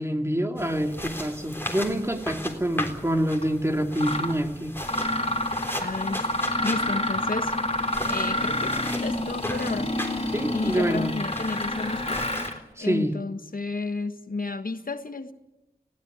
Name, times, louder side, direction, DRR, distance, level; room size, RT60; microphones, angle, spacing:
voice 1, 0.0-4.7 10.3-11.1 12.8-13.1, equal, 15° right, 4 dB, 2.7 m, -26 dB
sound 1, 0.6-12.5, left 1 dB, 15° left, 3.8 m, -37 dB
Mechanisms, 3.3-3.5 4.0-4.3 4.8-12.6, left 1 dB, 40° left, 3.2 m, -28 dB
voice 2, 5.8-6.3 6.6-9.9 10.5-12.2 12.8-15.3, left 3 dB, 60° left, 8 dB, 1.5 m, -32 dB
19.5 x 17.0 x 9.6 m, 0.91 s
wide cardioid pair, 65°, 16 cm